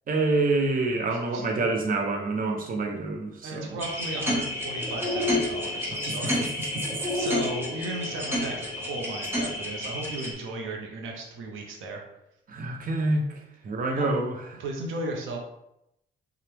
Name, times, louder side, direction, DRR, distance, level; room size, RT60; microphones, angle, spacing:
voice 1, 0.1-3.8 6.1-6.2 6.9-7.0 12.5-13.3 13.6-14.6, right 2 dB, 45° right, 3 dB, 0.9 m, -27 dB
voice 2, 1.1-1.4 3.4-6.4 7.1-12.0 14.0-14.1 14.6-15.4, right 2 dB, 85° right, 1 dB, 1.0 m, -35 dB
sound 1, 3.8-10.3, left 1 dB, 10° right, 1.4 m, -30 dB
sound 2, 4.4-9.6, left 5 dB, 60° left, 0.7 m, -44 dB
5.9 x 2.5 x 3.4 m, 0.81 s
cardioid pair, 90°, 20 cm